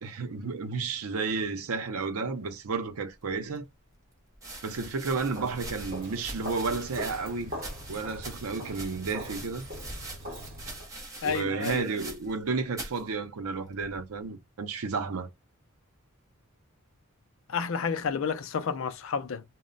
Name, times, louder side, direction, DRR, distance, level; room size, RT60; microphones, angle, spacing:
voice 1, 0.0-3.6 4.6-7.5 7.9-9.7 11.2-15.3, right 4 dB, 85° right, 0.6 m, -32 dB
sound 1, 4.3-12.5 12.7-13.0 13.8-14.2, right 2 dB, 15° right, 0.6 m, -43 dB
Walk footsteps, 5.3-10.9, equal, 40° right, 1.1 m, -42 dB
voice 2, 11.2-11.9 17.5-19.4, left 6 dB, 65° left, 0.4 m, -30 dB
2.1 x 2.1 x 3.7 m
head